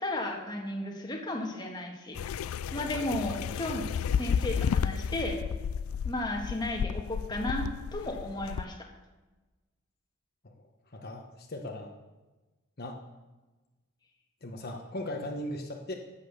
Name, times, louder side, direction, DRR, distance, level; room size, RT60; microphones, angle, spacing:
voice 1, 0.0-2.2 2.7-3.8 4.1-5.4 6.0-8.9, left 1 dB, 20° left, 1 dB, 1.6 m, -34 dB
sound 1, 2.1-8.6, left 7 dB, 85° left, 0.3 m, -32 dB
voice 2, 10.9-11.9 12.8-13.0 14.4-15.9, left 1 dB, 50° left, 1 dB, 1.2 m, -38 dB
11.0 x 8.6 x 6.8 m, 1.2 s
head